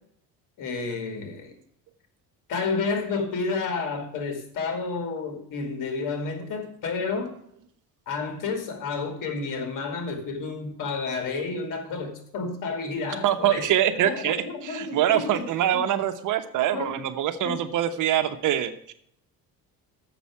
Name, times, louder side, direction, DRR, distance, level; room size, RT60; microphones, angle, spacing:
voice 1, 0.6-1.5 2.5-7.4 8.1-13.7 14.0-15.8 16.7-17.0 17.4-17.6, left 4 dB, 60° left, 6 dB, 2.5 m, -30 dB
voice 2, 13.2-18.9, right 11 dB, 60° right, 10 dB, 1.0 m, -24 dB
7.6 x 6.0 x 6.9 m, 0.69 s
cardioid pair, 110°, 35 cm